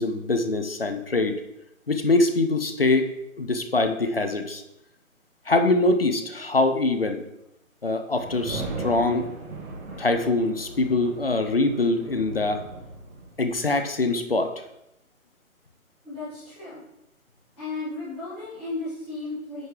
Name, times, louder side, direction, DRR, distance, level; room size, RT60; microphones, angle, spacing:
voice 1, 0.0-1.4 1.9-3.1 3.4-4.6 5.5-7.2 7.8-9.3 10.0-12.6 13.4-14.5, left 2 dB, 45° left, 8 dB, 0.5 m, -23 dB
sound 1, 8.2-13.6, right 3 dB, 90° right, 1.8 m, -37 dB
voice 2, 16.0-16.8 17.5-19.6, left 3 dB, 5° left, -16 dB, 1.0 m, -34 dB
9.2 x 3.5 x 3.2 m, 0.86 s
hypercardioid pair, 170°, 42 cm